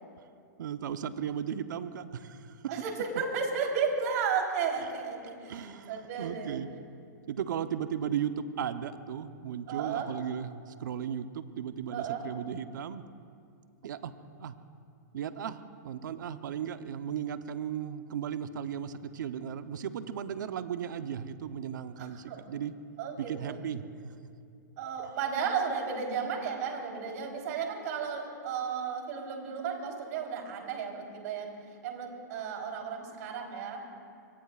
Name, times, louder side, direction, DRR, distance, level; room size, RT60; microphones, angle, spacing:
voice 1, 0.6-2.6 3.2-3.3 5.5-6.7 7.3-13.0 13.8-14.1 14.4-14.5 15.1-22.7 23.2-24.1 25.0-25.1, right 8 dB, 75° right, 10 dB, 0.9 m, -36 dB
voice 2, 2.7-6.6 9.7-10.1 11.9-12.3 22.0-22.5 23.0-23.6 24.8-31.6 31.8-33.8, right 6 dB, 55° right, 1 dB, 3.8 m, -34 dB
26.0 x 22.5 x 2.5 m, 2.4 s
hypercardioid pair, 145°, 10 cm